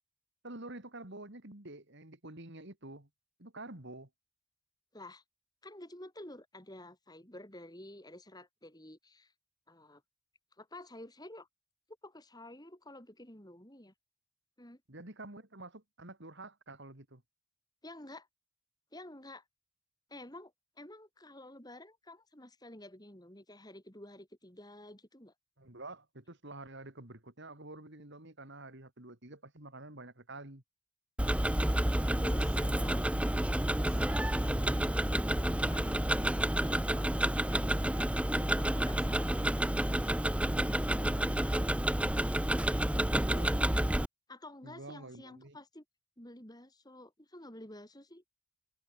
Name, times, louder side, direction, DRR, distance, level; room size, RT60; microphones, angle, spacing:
voice 1, 0.4-3.1 3.4-4.1 14.9-17.2 25.6-30.6 43.2-43.5 44.6-45.6, right 2 dB, 50° right, 2.9 m, -48 dB
voice 2, 4.9-5.2 5.6-9.3 9.7-10.0 10.6-11.5 12.0-13.9 14.6-14.8 17.8-18.3 18.9-19.4 20.1-25.3 32.2-33.2 33.7-34.8 35.4-37.6 37.9-39.5 40.4-41.5 43.1-43.6 44.3-45.8 46.2-48.2, left 1 dB, 15° left, 3.5 m, -50 dB
Tick-tock, 31.2-44.1, right 1 dB, 5° right, 0.6 m, -30 dB
head